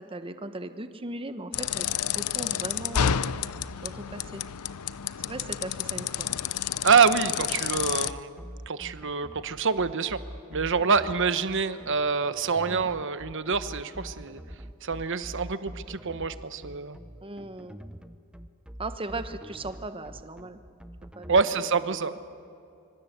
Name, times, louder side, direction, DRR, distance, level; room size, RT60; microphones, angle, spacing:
voice 1, 0.0-3.2 3.8-4.4 5.2-6.3 10.8-11.1 12.7-12.9 17.2-17.8 18.8-20.6 21.1-22.2, right 2 dB, 25° right, 10 dB, 1.1 m, -38 dB
sound 1, 1.5-8.1, left 9 dB, 85° left, 0.7 m, -30 dB
voice 2, 6.8-10.2 10.5-14.4 14.8-17.0 21.3-22.1, right 5 dB, 55° right, 12 dB, 1.1 m, -26 dB
sound 2, 7.7-21.4, equal, 5° right, 0.7 m, -44 dB
25.0 x 25.0 x 8.1 m, 2.5 s
head